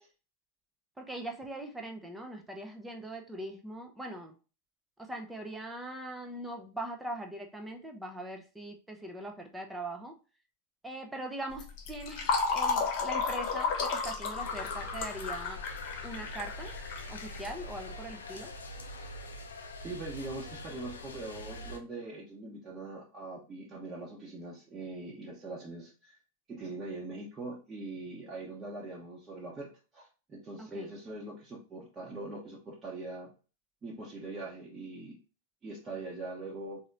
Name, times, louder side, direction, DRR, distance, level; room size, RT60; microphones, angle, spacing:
voice 1, 1.0-4.3 5.0-10.2 10.8-15.6 16.0-16.7 17.1-18.5 30.6-30.9, right 1 dB, 5° right, 3 dB, 0.7 m, -41 dB
Fill (with liquid), 11.5-17.9, left 4 dB, 45° left, 1.0 m, -33 dB
sound 1, 14.4-21.8, left 1 dB, 70° left, 0.6 m, -44 dB
voice 2, 19.8-26.2 26.5-33.3 33.8-35.2 35.6-36.8, right 2 dB, 20° right, -6 dB, 1.1 m, -42 dB
4.0 x 2.8 x 3.7 m, 0.34 s
figure-of-eight pair, 90°, 0 cm